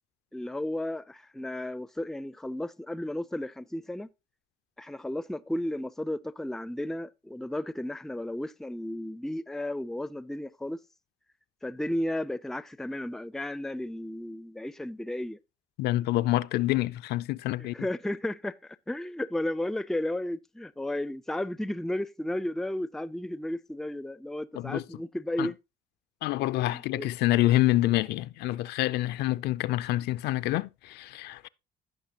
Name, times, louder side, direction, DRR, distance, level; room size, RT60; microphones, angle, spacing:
voice 1, 0.3-4.1 4.8-10.8 11.6-15.4 17.6-25.6 26.7-27.1, left 1 dB, ahead, 0.4 m, -33 dB
voice 2, 15.8-17.7 24.5-24.8 25.4-25.5 26.2-31.5, left 16 dB, 75° left, 0.4 m, -27 dB
15.5 x 5.7 x 2.8 m
cardioid pair, 110°, 17 cm